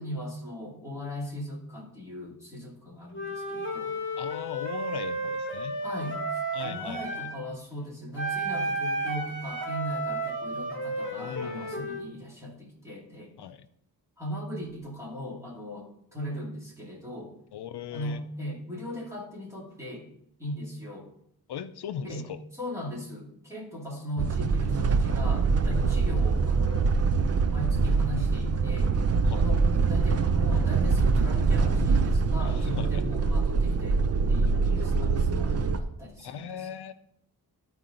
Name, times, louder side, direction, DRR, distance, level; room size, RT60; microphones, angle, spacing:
voice 1, 0.0-3.9 5.8-13.3 14.2-17.3 17.9-20.1 20.4-21.1 22.1-22.3 22.5-26.9 27.5-28.9 29.3-29.6 29.9-36.7, equal, 5° right, -5 dB, 2.4 m, -38 dB
Wind instrument woodwind instrument, 3.1-7.4 8.2-12.1, right 1 dB, 30° left, 2.2 m, -32 dB
voice 2, 4.2-5.8 6.5-7.2 11.2-12.1 13.4-13.7 17.5-18.2 21.5-22.4 29.2-29.5 32.4-33.0 36.2-36.9, left 8 dB, 80° left, 11 dB, 0.6 m, -39 dB
sound 1, 24.2-35.8, right 4 dB, 40° right, 0.5 m, -24 dB
13.0 x 4.7 x 3.8 m, 0.73 s
wide cardioid pair, 165°, 39 cm